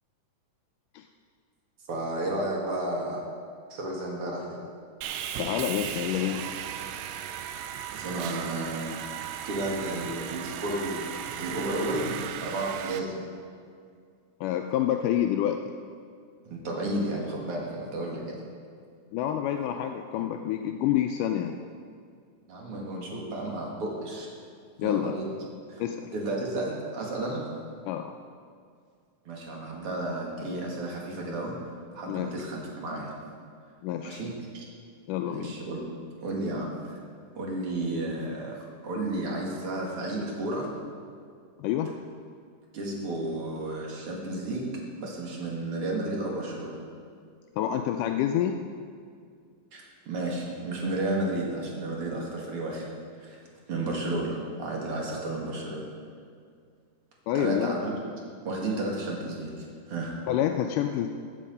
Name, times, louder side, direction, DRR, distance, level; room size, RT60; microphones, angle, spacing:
voice 1, 1.9-3.2 3.7-4.6 7.9-8.9 9.4-11.1 11.4-13.2 16.5-18.4 22.5-24.3 24.8-25.3 25.7-25.8 26.1-27.5 29.3-31.6 31.9-33.1 34.0-34.6 35.3-35.8 36.2-37.0 37.3-38.6 38.8-40.7 42.7-44.7 45.0-46.8 49.7-52.9 53.2-53.4 53.7-55.8 57.3-58.0 58.4-60.2, right 2 dB, 45° right, -2 dB, 2.7 m, -32 dB
Sawing, 5.0-13.0, right 10 dB, 85° right, 1.6 m, -36 dB
voice 2, 5.4-6.5 14.4-15.7 19.1-21.6 24.8-25.1 25.8-26.1 27.9-28.1 32.1-32.3 33.8-34.2 35.1-35.6 41.6-41.9 47.6-48.6 57.3-57.7 60.3-61.1, left 11 dB, 85° left, 5 dB, 2.1 m, -28 dB
15.0 x 8.5 x 5.4 m, 2.2 s
omnidirectional pair, 3.7 m